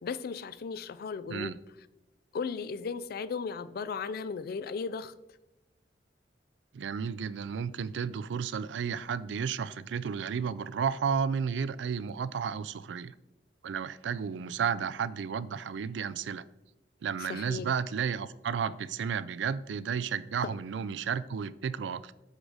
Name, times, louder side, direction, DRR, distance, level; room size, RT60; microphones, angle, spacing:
voice 1, 0.0-1.5 2.3-5.1 17.2-17.7 20.4-20.5, left 5 dB, 55° left, 0.4 m, -36 dB
voice 2, 6.7-13.1 13.6-16.4 17.0-22.1, right 6 dB, 80° right, 0.4 m, -32 dB
8.0 x 6.2 x 3.9 m
head